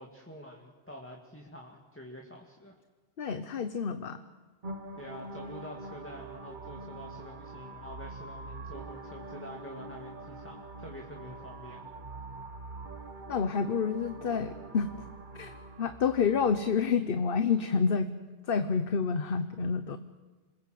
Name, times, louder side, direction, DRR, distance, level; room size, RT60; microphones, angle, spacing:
voice 1, 0.0-2.8 4.9-11.8, left 1 dB, 10° left, 0 dB, 2.1 m, -47 dB
voice 2, 3.2-4.2 13.3-14.9 15.3-15.5 15.8-18.1 18.5-20.0, left 6 dB, 60° left, 10 dB, 1.1 m, -28 dB
sound 1, 4.6-16.6, right 2 dB, 50° right, 1.3 m, -44 dB
27.5 x 21.0 x 7.8 m, 1.3 s
omnidirectional pair, 1.1 m